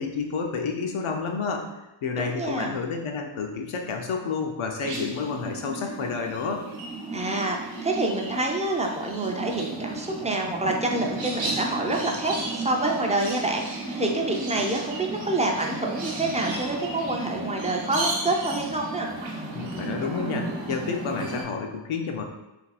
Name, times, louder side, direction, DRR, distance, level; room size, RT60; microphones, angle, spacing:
voice 1, 0.0-1.7 2.0-6.7 19.5-22.2, left 5 dB, 80° left, 3 dB, 0.6 m, -30 dB
voice 2, 2.2-2.8 7.1-19.1, right 2 dB, 15° right, 1 dB, 0.3 m, -27 dB
sound 1, 4.8-21.4, right 2 dB, 70° right, 0.8 m, -34 dB
2.6 x 2.3 x 4.0 m, 1.0 s
wide cardioid pair, 105°, 48 cm